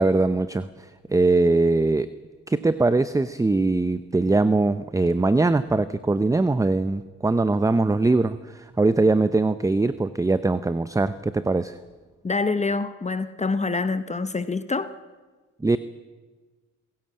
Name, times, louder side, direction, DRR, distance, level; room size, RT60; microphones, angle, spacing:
voice 1, 0.0-2.1 2.5-11.8 15.6-15.8, right 3 dB, 10° right, 13 dB, 0.7 m, -21 dB
voice 2, 12.2-14.9, left 3 dB, 25° left, 11 dB, 1.0 m, -26 dB
27.0 x 16.5 x 7.7 m, 1.3 s
cardioid pair, 90°, 30 cm